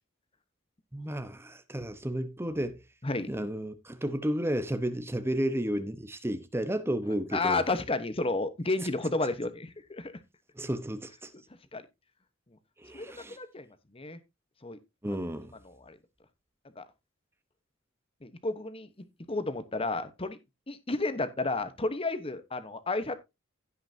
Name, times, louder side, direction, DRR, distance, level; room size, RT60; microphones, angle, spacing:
voice 1, 0.9-2.8 3.3-7.6 10.6-11.3 12.8-13.4 15.0-15.5, right 1 dB, 10° right, 1.0 m, -32 dB
voice 2, 7.3-10.1 11.7-11.8 12.9-13.7 13.9-14.2 14.6-14.8 15.6-16.0 16.8-16.9 18.2-18.9 19.3-20.4 20.7-23.1, left 2 dB, 30° left, 1.1 m, -31 dB
16.0 x 5.8 x 2.8 m
head